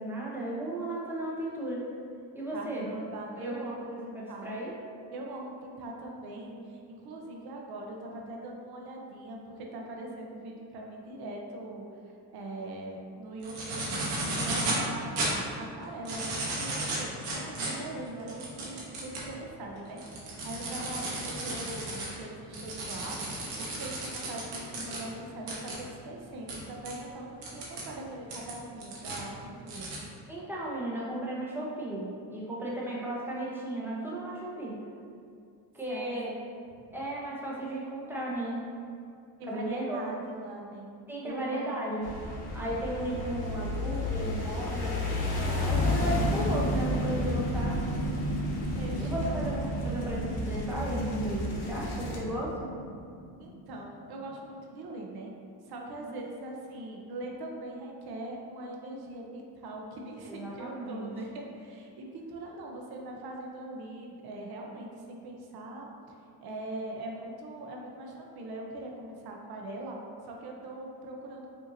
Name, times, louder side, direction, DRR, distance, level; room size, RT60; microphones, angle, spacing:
voice 1, 0.0-1.8 2.3-2.9 3.4-4.7 17.6-18.4 30.3-34.8 35.7-36.3 36.9-38.7 39.5-40.0 41.1-42.1 42.5-45.0 45.6-47.8 49.0-52.7 56.0-56.2 60.3-61.1, right 1 dB, 5° right, -6 dB, 0.9 m, -35 dB
voice 2, 2.5-3.7 4.3-4.5 5.1-11.8 12.3-29.9 35.9-36.4 39.4-40.9 41.2-42.0 42.8-42.9 43.2-43.3 48.8-49.4 53.4-55.3 55.7-65.9 66.4-71.5, right 1 dB, 65° right, 0 dB, 0.7 m, -41 dB
sound 1, 13.4-14.8 15.2-15.3 15.9-19.3 19.8-25.0 25.5-25.7 26.5-26.6 26.8-26.9 27.4-27.8 28.3-29.2 29.7-30.0, right 2 dB, 90° right, 1.1 m, -34 dB
sound 2, 42.0-52.2, left 1 dB, 70° left, 1.0 m, -32 dB
sound 3, 45.7-54.2 54.5-54.6, right 1 dB, 20° left, 0.9 m, -35 dB
5.0 x 2.7 x 2.7 m, 2.4 s
cardioid pair, 105°, 42 cm